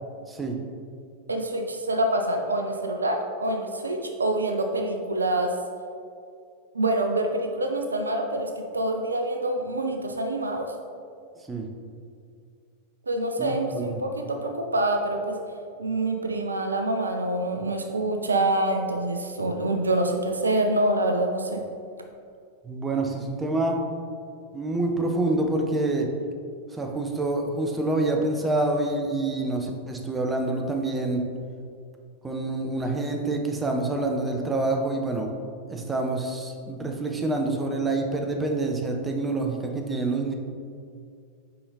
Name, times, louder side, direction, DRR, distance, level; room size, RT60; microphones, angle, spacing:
voice 1, 0.3-0.6 11.5-11.7 13.4-13.9 22.6-23.8 24.5-26.1 26.7-31.2 32.2-35.3 35.7-40.3, right 2 dB, 15° right, 2 dB, 0.7 m, -27 dB
voice 2, 1.3-5.6 6.7-10.7 13.1-15.4 15.8-21.6, right 1 dB, 75° right, 4 dB, 0.5 m, -26 dB
5.7 x 5.0 x 4.0 m, 2.3 s
figure-of-eight pair, 90°, 0 cm